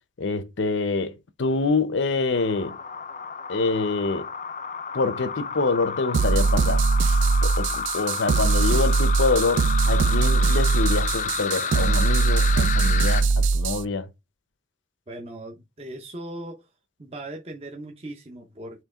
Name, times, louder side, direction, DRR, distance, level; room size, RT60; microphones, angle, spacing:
voice 1, 0.2-2.8 3.5-4.3 4.9-6.8 7.4-14.1, left 3 dB, 80° left, 0.7 m, -26 dB
sound 1, 2.3-13.2, left 6 dB, 40° left, 0.4 m, -31 dB
sound 2, 6.1-13.8, right 4 dB, 80° right, 0.4 m, -21 dB
voice 2, 15.1-16.7 17.0-18.8, right 1 dB, 30° right, 0.7 m, -38 dB
4.5 x 3.0 x 3.6 m
head